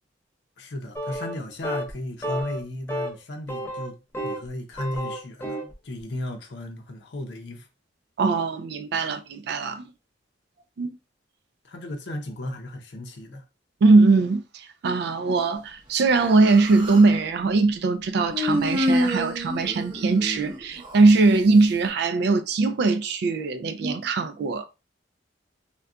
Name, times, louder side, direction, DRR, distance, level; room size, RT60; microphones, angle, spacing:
voice 1, 0.6-4.0 4.2-7.7 11.6-13.5, left 1 dB, 65° left, 0.6 m, -35 dB
sound 1, 1.0-1.4 1.6-1.9 2.2-2.6 2.9-3.1 3.5-4.5 4.7-5.7, equal, 15° left, 0.5 m, -31 dB
voice 2, 8.2-9.9 10.8-10.9 13.8-24.7, right 3 dB, 60° right, 0.3 m, -21 dB
Human voice, 16.2-17.1 18.3-21.0, left 1 dB, 25° right, 0.7 m, -27 dB
2.3 x 2.2 x 3.7 m
head